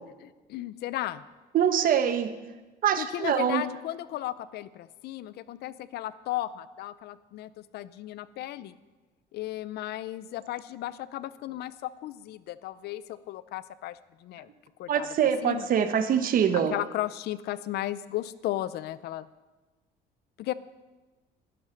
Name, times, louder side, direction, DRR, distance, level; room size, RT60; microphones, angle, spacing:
voice 1, 0.2-1.2 3.0-8.7 9.3-14.5 14.8-15.1 15.4-15.7 16.5-19.3 20.4-20.5, left 14 dB, 75° left, 17 dB, 0.6 m, -35 dB
voice 2, 1.5-2.3 2.8-3.6 14.9-16.7, right 8 dB, 55° right, 10 dB, 1.1 m, -24 dB
11.0 x 10.5 x 6.5 m, 1.2 s
cardioid pair, 110°, 17 cm